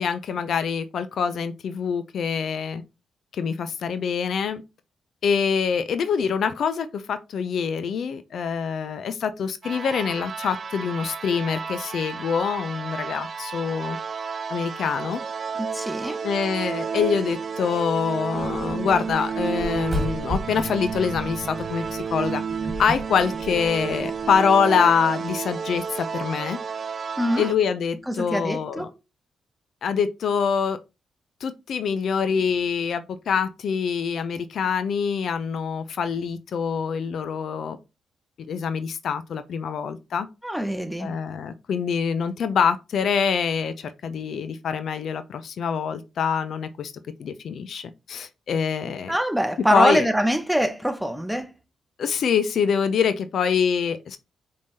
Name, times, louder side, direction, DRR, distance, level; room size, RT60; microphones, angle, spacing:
voice 1, 0.0-2.8 3.3-4.6 5.2-14.0 14.5-15.2 16.2-22.4 22.8-26.6 27.4-28.9 29.8-30.8 31.4-37.8 38.5-40.3 41.0-46.9 47.2-49.1 49.7-50.1 52.0-54.2, left 6 dB, 70° left, 0.5 m, -25 dB
sound 1, 9.6-27.5, right 6 dB, 50° right, 0.4 m, -31 dB
voice 2, 15.6-16.2 27.2-27.5 28.1-28.9 40.4-41.1 49.1-51.5, equal, 5° right, 0.7 m, -24 dB
sound 2, 18.3-24.4, equal, 35° right, 1.7 m, -35 dB
5.3 x 3.3 x 2.7 m
cardioid pair, 70°, 0 cm